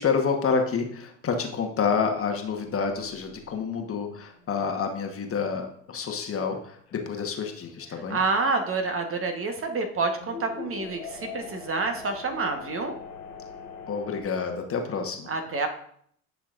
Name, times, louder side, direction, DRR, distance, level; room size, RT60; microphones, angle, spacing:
voice 1, 0.0-8.2 13.9-15.3, left 5 dB, 30° left, 4 dB, 1.3 m, -28 dB
sound 1, 1.8-5.5 5.9-6.0 6.5-8.1 8.6-8.7 10.1-14.2, left 5 dB, 90° left, 1.4 m, -44 dB
voice 2, 8.1-12.9 15.3-15.7, right 3 dB, 30° right, 5 dB, 1.2 m, -28 dB
10.0 x 5.7 x 2.5 m, 0.64 s
hypercardioid pair, 75°, 43 cm